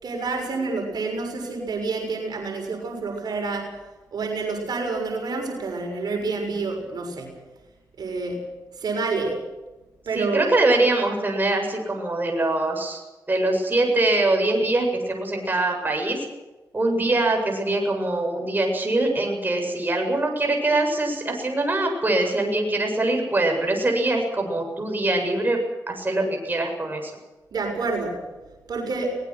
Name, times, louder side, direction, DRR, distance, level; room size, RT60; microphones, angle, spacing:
voice 1, 0.0-3.7 4.1-7.3 8.0-8.4 8.8-9.4 10.1-10.5 27.5-28.2 28.7-29.2, right 3 dB, 70° right, 2 dB, 6.8 m, -28 dB
voice 2, 10.1-13.0 13.3-16.3 16.7-25.6 25.9-27.1, right 2 dB, 25° right, 2 dB, 7.9 m, -23 dB
24.0 x 20.0 x 6.3 m, 1.1 s
cardioid pair, 70°, 7 cm